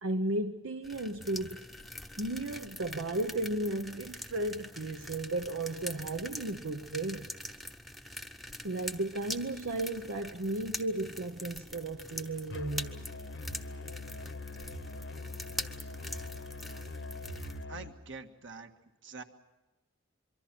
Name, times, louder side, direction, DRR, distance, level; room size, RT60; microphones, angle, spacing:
voice 1, 0.0-1.6 2.2-7.3 8.6-13.0, right 2 dB, 85° right, 1.0 m, -34 dB
sound 1, 0.8-17.6, left 1 dB, ahead, 0.8 m, -44 dB
Musical instrument, 12.5-18.0, left 3 dB, 60° left, 1.0 m, -43 dB
voice 2, 17.7-18.7 19.0-19.2, right 4 dB, 65° right, 1.7 m, -45 dB
25.5 x 24.0 x 6.1 m
head